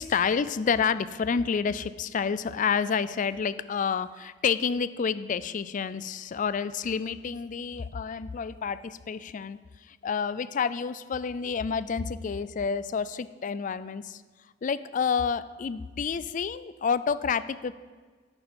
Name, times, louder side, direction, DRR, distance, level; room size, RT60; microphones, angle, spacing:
voice 1, 0.0-9.6 9.9-14.2 14.6-17.7, left 6 dB, 45° left, 15 dB, 0.4 m, -29 dB
11.0 x 8.9 x 4.3 m, 1.5 s
head